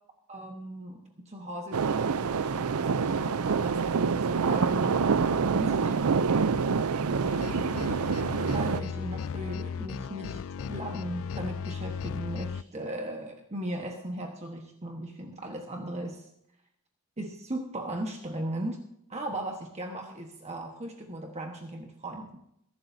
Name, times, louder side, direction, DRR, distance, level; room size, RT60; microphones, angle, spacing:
voice 1, 0.3-1.0 1.3-6.0 8.5-16.3 17.2-18.8 19.1-22.4, right 1 dB, 30° right, 2 dB, 1.3 m, -37 dB
sound 1, 1.7-8.8, right 5 dB, 75° right, 0.5 m, -26 dB
sound 2, 7.3-12.6, left 6 dB, 60° left, 0.4 m, -36 dB
22.5 x 12.0 x 2.7 m, 0.76 s
head